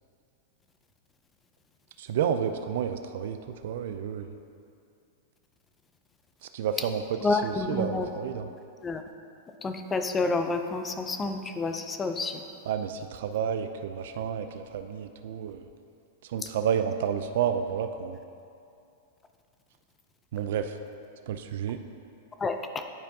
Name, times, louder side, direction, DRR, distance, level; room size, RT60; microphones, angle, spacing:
voice 1, 2.0-4.3 6.5-8.5 12.6-15.6 16.2-18.2 20.3-20.8 21.3-21.8, right 8 dB, 70° right, 8 dB, 0.3 m, -30 dB
voice 2, 7.2-8.1 8.8-9.0 9.6-12.4 22.4-22.6, left 3 dB, 15° left, 7 dB, 0.4 m, -29 dB
10.0 x 4.4 x 2.7 m, 2.6 s
supercardioid pair, 140°, 0 cm